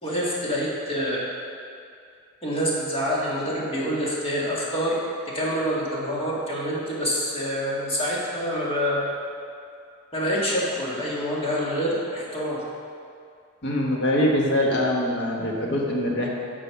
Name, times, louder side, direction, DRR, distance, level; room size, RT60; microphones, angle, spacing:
voice 1, 0.0-1.3 2.4-5.0 5.3-9.1 10.1-12.6, equal, 25° left, -5 dB, 1.9 m, -26 dB
voice 2, 13.6-16.3, left 1 dB, 55° left, -1 dB, 1.4 m, -23 dB
8.7 x 5.4 x 5.9 m, 2.3 s
head